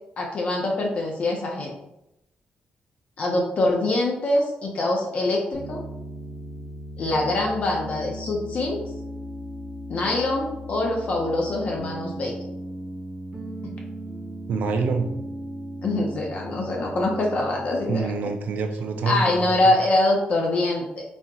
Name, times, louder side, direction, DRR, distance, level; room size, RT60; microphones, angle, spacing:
voice 1, 0.2-1.7 3.2-5.8 7.0-8.8 9.9-12.3 13.6-13.7 15.8-18.1 19.0-21.0, left 2 dB, 45° left, 0 dB, 0.6 m, -24 dB
Piano, 5.5-18.0, right 1 dB, 35° right, 0.9 m, -37 dB
voice 2, 14.5-15.1 17.9-19.7, right 4 dB, 65° right, 5 dB, 0.4 m, -26 dB
4.1 x 2.9 x 2.3 m, 0.84 s
cardioid pair, 155°, 3 cm